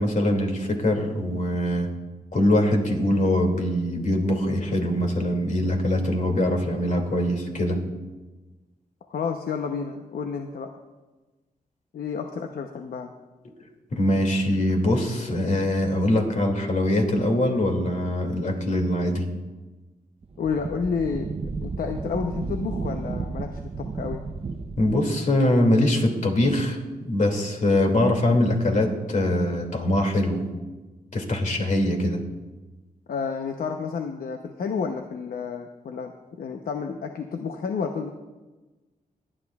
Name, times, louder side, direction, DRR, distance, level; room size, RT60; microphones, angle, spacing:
voice 1, 0.0-1.9 2.3-7.8 13.9-19.3 24.8-30.5 31.1-32.2, left 1 dB, 55° left, 3 dB, 2.4 m, -23 dB
voice 2, 9.1-10.7 11.9-13.1 20.4-21.3 21.6-24.2 33.1-36.1 36.4-38.1, left 5 dB, 70° left, 4 dB, 0.8 m, -30 dB
Wind, 20.2-25.1, right 4 dB, 40° right, 0.7 m, -33 dB
23.0 x 10.0 x 2.4 m, 1.2 s
cardioid pair, 85°, 16 cm